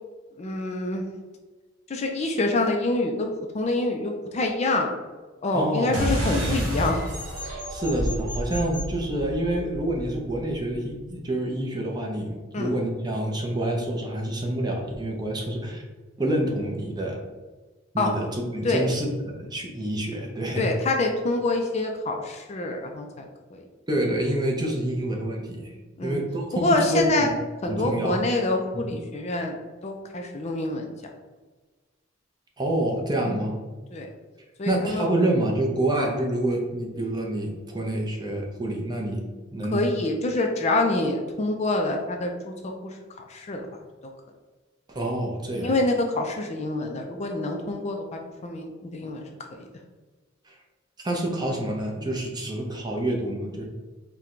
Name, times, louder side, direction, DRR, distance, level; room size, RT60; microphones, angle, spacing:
voice 1, 0.4-1.0 1.9-3.3 3.5-4.9 5.4-7.0 12.5-12.7 18.0-18.1 18.6-18.8 20.6-23.2 23.5-23.6 26.0-26.2 26.6-27.3 27.6-29.5 29.8-30.9 33.3-33.4 33.9-34.1 34.6-35.1 39.7-42.5 43.3-43.7 45.6-48.0 48.4-49.3 49.6-49.7, left 2 dB, 35° left, 3 dB, 0.4 m, -26 dB
voice 2, 5.5-6.1 7.7-15.8 16.2-17.2 17.9-20.6 23.9-25.7 26.0-26.4 26.7-27.3 27.7-28.2 28.7-29.0 32.6-33.6 34.7-39.2 39.5-39.8 44.9-45.7 50.5-50.6 51.0-53.6, right 1 dB, 20° right, 0 dB, 0.6 m, -27 dB
sound 1, 5.9-10.8, equal, 70° right, 1.2 m, -30 dB
4.4 x 2.2 x 3.7 m, 1.3 s
head